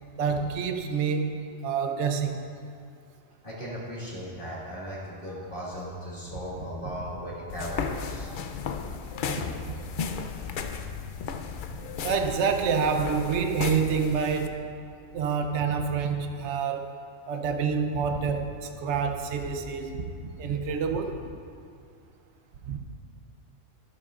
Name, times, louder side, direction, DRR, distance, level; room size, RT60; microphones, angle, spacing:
voice 1, 0.2-1.3 1.6-2.4 6.5-6.6 9.3-9.8 11.8-14.6 15.1-17.0 17.3-21.2 22.7-22.8, right 6 dB, 65° right, 5 dB, 1.0 m, -28 dB
voice 2, 3.4-8.5 10.3-10.6, equal, 40° left, -8 dB, 2.1 m, -37 dB
sound 1, 7.5-14.5, left 6 dB, 60° left, 0.5 m, -34 dB
12.0 x 12.0 x 2.5 m, 2.4 s
omnidirectional pair, 1.3 m